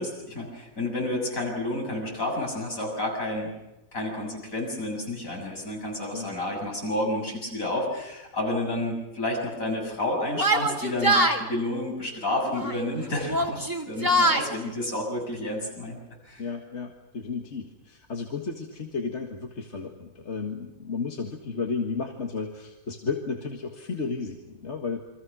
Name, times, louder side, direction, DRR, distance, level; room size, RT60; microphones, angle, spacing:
voice 1, 0.0-3.5 3.9-16.0 16.3-16.4, left 1 dB, 65° left, 0 dB, 7.7 m, -30 dB
Yell, 10.3-11.4 12.5-12.9 13.2-14.5, right 1 dB, 15° right, 2.3 m, -23 dB
voice 2, 16.4-25.0, left 4 dB, 50° left, 2 dB, 2.0 m, -33 dB
29.0 x 23.5 x 6.2 m, 0.98 s
omnidirectional pair, 1.5 m